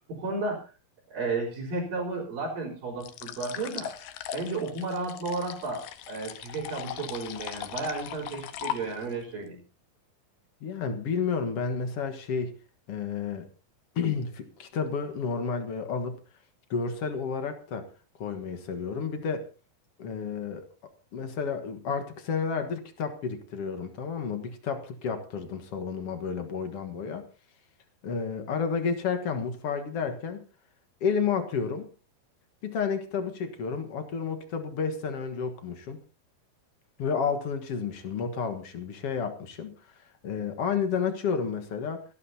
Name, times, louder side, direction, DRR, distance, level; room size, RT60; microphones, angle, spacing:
voice 1, 0.1-0.6 1.1-3.9 4.3-9.6, right 3 dB, 65° right, -8 dB, 5.9 m, -33 dB
sound 1, 3.0-9.2, left 11 dB, 80° left, 3.0 m, -39 dB
voice 2, 10.6-12.6 12.9-13.5 14.0-16.2 16.7-17.9 18.2-19.5 20.0-20.7 21.1-27.2 28.0-30.4 31.0-31.9 32.6-36.0 37.0-42.0, left 6 dB, 50° left, 7 dB, 1.9 m, -31 dB
28.0 x 12.0 x 2.8 m, 0.32 s
omnidirectional pair, 4.4 m